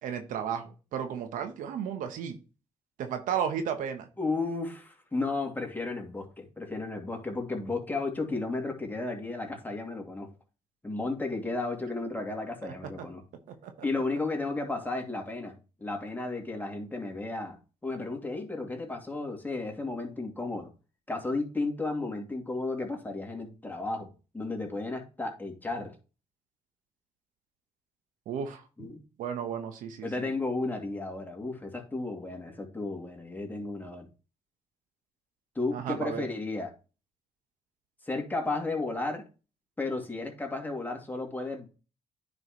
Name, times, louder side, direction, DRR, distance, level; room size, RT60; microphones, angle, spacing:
voice 1, 0.0-2.4 3.0-4.1 12.6-12.7 13.5-13.7 28.3-28.6 29.2-30.3 35.7-36.3, right 8 dB, 80° right, 7 dB, 1.0 m, -33 dB
voice 2, 4.2-10.3 10.8-13.2 13.8-15.5 15.8-17.6 17.8-20.7 21.1-24.1 24.3-25.9 28.8-29.0 30.0-34.1 35.5-36.7 38.0-39.2 39.8-41.7, left 3 dB, 15° left, 2 dB, 2.5 m, -33 dB
9.6 x 5.0 x 3.1 m, 0.33 s
supercardioid pair, 60°, 14 cm